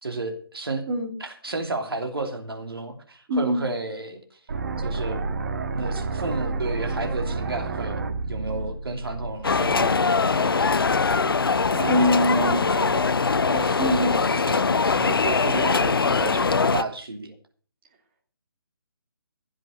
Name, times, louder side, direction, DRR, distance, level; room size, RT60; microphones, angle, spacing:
voice 1, 0.0-0.8 1.2-4.4 4.8-5.3 5.7-10.8 11.7-17.3, right 3 dB, 70° right, 5 dB, 3.1 m, -32 dB
voice 2, 3.3-3.7 11.9-12.6 13.8-14.2, equal, 30° right, 2 dB, 3.4 m, -23 dB
sound 1, 4.5-10.5, right 3 dB, 45° right, 1.9 m, -30 dB
sound 2, 9.4-16.8, left 4 dB, 65° left, 0.7 m, -22 dB
16.0 x 7.6 x 6.5 m, 0.42 s
figure-of-eight pair, 145°, 13 cm